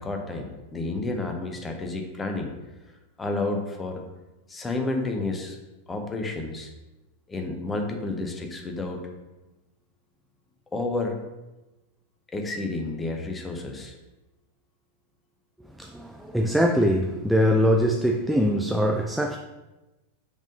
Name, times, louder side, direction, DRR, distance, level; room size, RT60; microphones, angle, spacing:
voice 1, 0.0-2.5 3.2-4.0 4.5-5.6 5.9-6.7 7.3-9.0 10.7-11.2 12.3-13.9, left 2 dB, 15° left, 0.9 m, -30 dB
voice 2, 15.8-19.4, equal, ahead, 0.3 m, -22 dB
5.2 x 3.6 x 5.1 m
figure-of-eight pair, 90°, 0 cm